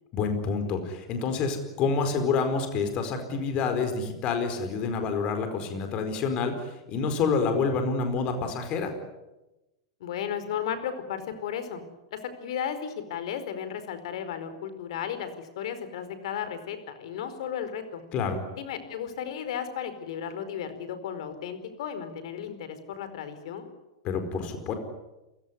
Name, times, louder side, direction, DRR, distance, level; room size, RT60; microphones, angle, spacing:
voice 1, 0.1-8.9 18.1-18.4 24.0-24.7, left 5 dB, 35° left, 7 dB, 4.6 m, -28 dB
voice 2, 10.0-11.8 12.1-18.0 18.5-23.7, left 8 dB, 65° left, 11 dB, 4.6 m, -34 dB
29.0 x 17.0 x 9.9 m, 1.0 s
supercardioid pair, 150°, 3 cm